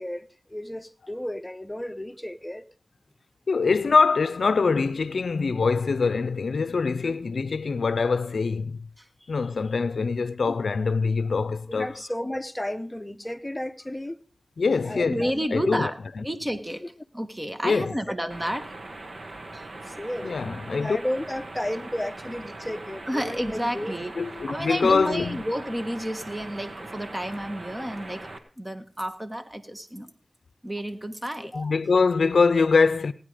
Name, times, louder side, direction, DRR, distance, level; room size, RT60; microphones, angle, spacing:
voice 1, 0.0-2.6 11.7-14.2 14.8-15.8 18.1-18.2 19.9-24.0 31.4-31.8, left 1 dB, 15° left, 0.9 m, -33 dB
voice 2, 3.5-8.8 9.3-11.9 14.6-16.2 17.6-18.0 20.2-21.0 24.2-25.4 31.5-33.1, left 4 dB, 85° left, 0.5 m, -24 dB
voice 3, 15.0-16.8 17.1-18.7 19.5-19.7 23.1-24.1 24.5-28.3 28.6-30.1 30.6-31.5, equal, 20° right, 1.5 m, -31 dB
sound 1, 18.3-28.4, right 2 dB, 60° right, 1.5 m, -41 dB
18.0 x 9.3 x 5.0 m
wide cardioid pair, 55°, 0 cm